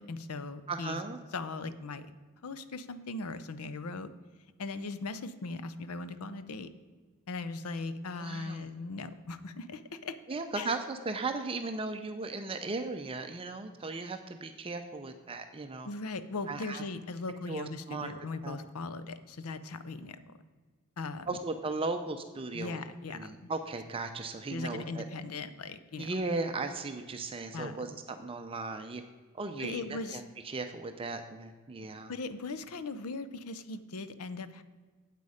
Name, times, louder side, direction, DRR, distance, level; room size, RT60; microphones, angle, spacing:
voice 1, 0.0-1.0 1.3-2.1 2.4-4.1 4.6-6.7 7.3-10.2 10.6-10.7 15.8-20.3 21.0-21.4 22.5-23.5 24.5-26.1 27.5-27.9 29.6-30.2 32.1-34.6, left 3 dB, 75° left, 13 dB, 0.6 m, -39 dB
voice 2, 0.7-1.2 8.2-8.7 10.3-15.9 16.5-16.8 17.5-18.1 18.4-18.6 21.3-22.8 23.1-25.0 26.0-29.0 29.3-32.1, right 3 dB, 25° right, 7 dB, 0.5 m, -37 dB
8.3 x 8.2 x 5.0 m, 1.4 s
head